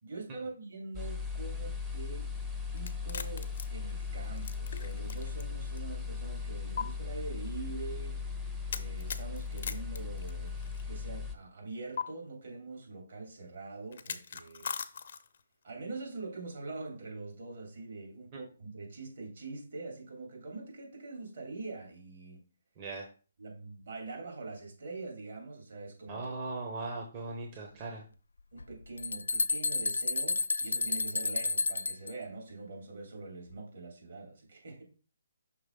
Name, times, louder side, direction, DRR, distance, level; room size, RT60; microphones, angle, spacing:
voice 1, 0.0-2.3 2.7-8.1 8.7-10.6 10.9-14.7 15.6-22.4 23.4-26.2 28.5-34.8, right 3 dB, 60° right, 3.0 m, -44 dB
sound 1, 0.9-11.4, left 5 dB, 5° right, 0.7 m, -38 dB
sound 2, 2.8-5.4 5.8-5.9 6.8-6.9 8.7-10.8 12.0-12.1 13.9-15.4, left 6 dB, 55° left, 0.7 m, -39 dB
voice 2, 22.8-23.1 26.1-28.0, right 3 dB, 30° right, 1.0 m, -39 dB
sound 3, 28.6-32.1, left 3 dB, 80° left, 0.3 m, -31 dB
6.0 x 3.2 x 5.3 m
figure-of-eight pair, 145°, 0 cm